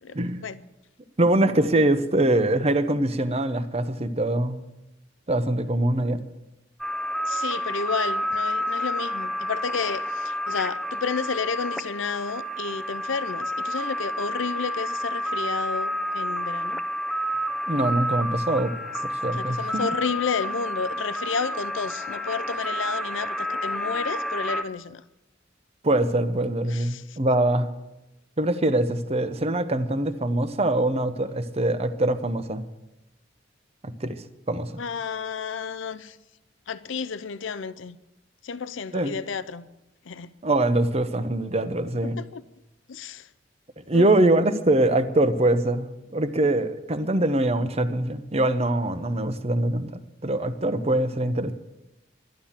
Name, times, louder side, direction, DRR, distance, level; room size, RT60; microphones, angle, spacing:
voice 1, 0.1-0.5 1.2-4.6 5.3-6.2 17.7-18.7 19.0-19.6 25.8-27.7 28.4-32.6 33.8-34.8 38.9-39.2 40.4-42.2 43.9-49.9 50.2-51.5, right 1 dB, 35° right, 0.8 m, -23 dB
sound 1, 6.8-24.6, equal, ahead, 0.7 m, -30 dB
voice 2, 7.3-16.8 19.4-25.0 26.7-27.2 34.8-36.2 36.7-38.0 38.4-39.7 40.1-40.3 42.0-42.4 42.9-43.3 43.9-44.1, left 5 dB, 90° left, 0.6 m, -31 dB
11.5 x 11.5 x 7.3 m
head